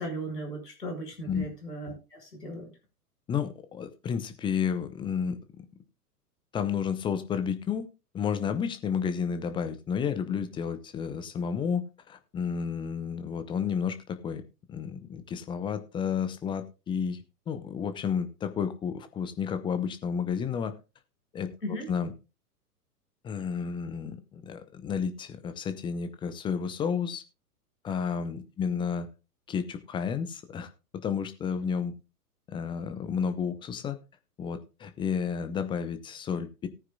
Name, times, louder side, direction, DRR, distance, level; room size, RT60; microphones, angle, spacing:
voice 1, 0.0-2.7 21.6-21.9, right 1 dB, 75° left, 3 dB, 5.2 m, -37 dB
voice 2, 3.3-5.4 6.5-7.9 8.1-14.4 14.7-20.7 21.3-22.1 23.2-27.2 27.8-29.1 29.5-31.9 32.5-34.0 34.4-36.7, left 7 dB, 10° left, 11 dB, 0.7 m, -31 dB
18.0 x 9.5 x 2.3 m, 0.28 s
figure-of-eight pair, 105°, 47 cm